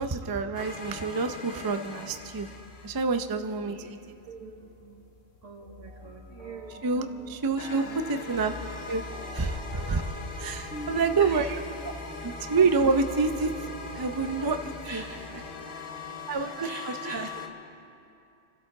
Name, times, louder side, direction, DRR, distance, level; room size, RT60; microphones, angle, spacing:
voice 1, 0.0-2.5 2.8-4.0 6.8-8.5 8.9-9.0 9.3-10.1 10.4-11.5 12.2-13.5 13.9-15.0 16.3-17.3, right 4 dB, 30° right, 8 dB, 0.4 m, -27 dB
sound 1, 0.5-3.3 7.6-17.5, left 3 dB, 50° left, 1.3 m, -41 dB
sound 2, 0.9-15.5, left 3 dB, 70° left, 2.1 m, -46 dB
voice 2, 4.3-5.1 5.4-7.4 7.8-8.0 9.4-9.5 10.7-11.5 14.8-17.5, right 3 dB, 70° right, -1 dB, 1.6 m, -43 dB
29.0 x 13.0 x 3.8 m, 2.6 s
omnidirectional pair, 1.4 m